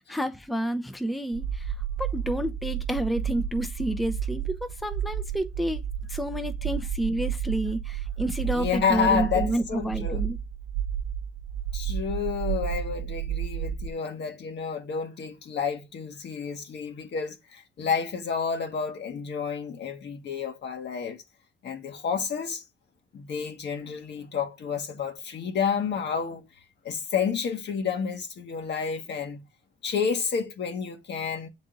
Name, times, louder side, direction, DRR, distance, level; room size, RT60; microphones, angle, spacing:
voice 1, 0.1-1.7 2.0-5.8 6.1-10.4, right 1 dB, ahead, 0.6 m, -29 dB
sound 1, 1.3-13.9, right 9 dB, 90° right, 0.7 m, -32 dB
voice 2, 8.4-10.3 11.7-21.2 21.6-22.6 23.1-26.5 26.8-29.4 29.8-31.5, left 6 dB, 60° left, 1.5 m, -30 dB
6.6 x 4.0 x 3.8 m
cardioid pair, 90°, 20 cm